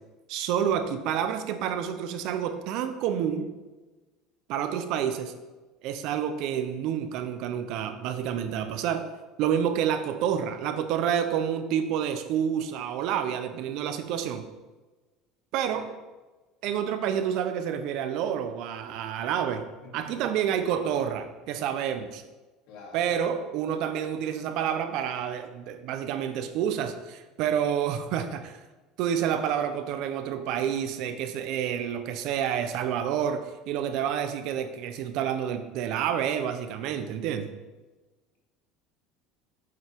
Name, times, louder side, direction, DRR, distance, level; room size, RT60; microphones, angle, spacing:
voice 1, 0.3-3.5 4.5-5.3 5.8-9.0 9.4-14.5 15.5-15.9 16.6-19.6 19.9-22.2 22.9-28.6 29.0-37.5, right 9 dB, 55° right, 9 dB, 0.7 m, -29 dB
voice 2, 19.8-20.4 22.7-23.2, left 3 dB, 65° left, -2 dB, 2.7 m, -47 dB
8.2 x 7.7 x 3.6 m, 1.2 s
cardioid pair, 170°, 0 cm